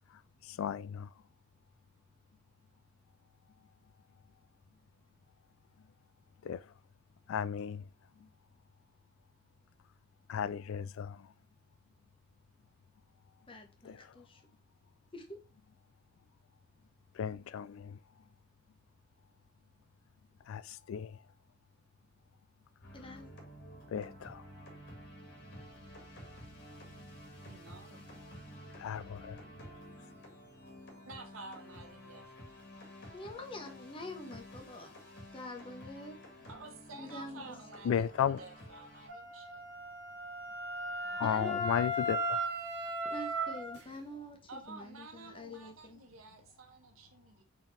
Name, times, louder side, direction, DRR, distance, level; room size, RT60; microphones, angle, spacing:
voice 1, 0.4-1.1 6.4-6.6 7.3-7.9 10.3-11.3 13.8-14.1 17.1-18.0 20.5-21.2 23.9-24.4 28.7-29.4 37.8-38.4 41.1-42.4, left 8 dB, 80° left, 0.3 m, -35 dB
voice 2, 13.5-14.4 15.1-15.4 22.9-23.3 33.1-34.9 35.3-36.2 36.9-37.6 41.2-41.9 43.1-46.0, left 1 dB, 25° left, 1.0 m, -46 dB
sound 1, 22.8-39.1, equal, 60° left, 1.7 m, -51 dB
voice 3, 27.4-28.0 31.1-32.2 36.5-39.6 44.5-47.4, right 3 dB, 90° right, 1.2 m, -51 dB
Wind instrument woodwind instrument, 39.1-43.8, equal, 60° right, 1.1 m, -36 dB
4.5 x 3.6 x 3.2 m
head